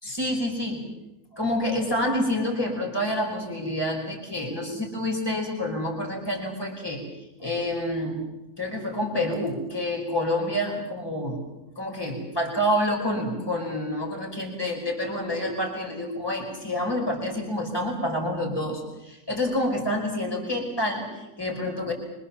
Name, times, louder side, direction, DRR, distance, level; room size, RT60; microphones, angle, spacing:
voice 1, 0.0-0.8 1.3-7.0 7.4-8.2 8.6-11.4 11.8-21.9, left 1 dB, 15° left, 0 dB, 5.1 m, -28 dB
26.0 x 25.0 x 7.2 m, 0.94 s
omnidirectional pair, 1.7 m